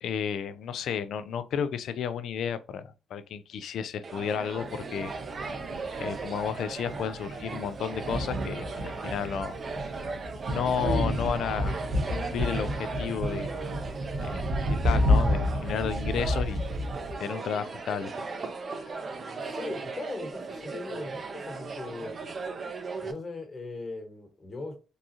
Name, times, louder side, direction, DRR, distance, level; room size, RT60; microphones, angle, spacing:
voice 1, 0.0-5.1 6.0-9.6 9.8-9.9 10.5-11.8 12.1-13.5 14.2-16.7 17.2-18.1, left 7 dB, 70° left, 0.4 m, -32 dB
sound 1, 4.0-23.1, right 4 dB, 40° right, 0.5 m, -37 dB
Thunder, 4.6-17.2, left 1 dB, 60° right, 1.7 m, -31 dB
voice 2, 19.3-22.1 23.0-24.8, left 3 dB, 35° left, 1.3 m, -39 dB
3.7 x 2.4 x 2.8 m
cardioid pair, 90°, 0 cm